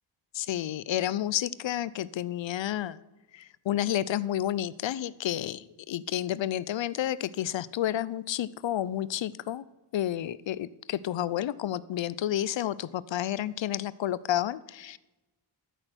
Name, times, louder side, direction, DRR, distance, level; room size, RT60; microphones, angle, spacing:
voice 1, 0.3-3.0 3.3-9.6 9.9-15.0, left 12 dB, 70° left, 19 dB, 0.7 m, -30 dB
13.5 x 6.5 x 7.9 m, 1.0 s
supercardioid pair, 45°, 47 cm